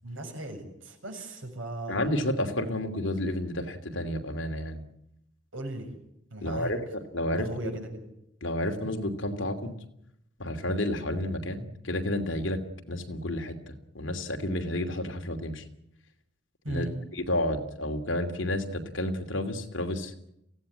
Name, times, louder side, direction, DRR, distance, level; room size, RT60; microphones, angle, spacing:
voice 1, 0.0-2.0 5.5-5.9 6.3-6.7 7.4-8.1 16.6-16.9, right 2 dB, 85° right, 3 dB, 7.0 m, -37 dB
voice 2, 1.9-4.8 6.4-7.7 8.4-9.7 10.4-12.6 12.9-15.6 16.7-16.9 17.1-20.1, left 1 dB, 70° left, 5 dB, 2.8 m, -31 dB
24.0 x 16.5 x 9.8 m, 0.81 s
head